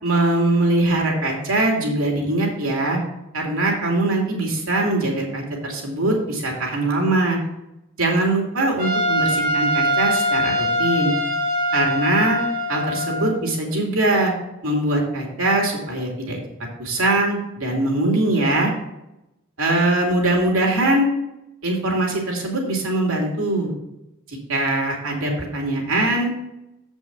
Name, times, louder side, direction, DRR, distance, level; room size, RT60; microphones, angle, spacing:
voice 1, 0.0-3.0 3.3-7.4 8.0-11.1 11.7-12.4 12.7-14.3 14.6-16.4 16.8-18.7 19.6-21.1 21.6-23.7 24.3-26.3, right 2 dB, 80° right, -1 dB, 2.6 m, -21 dB
Trumpet, 8.8-13.4, equal, 40° right, 2.2 m, -22 dB
7.8 x 5.3 x 6.0 m, 0.90 s
head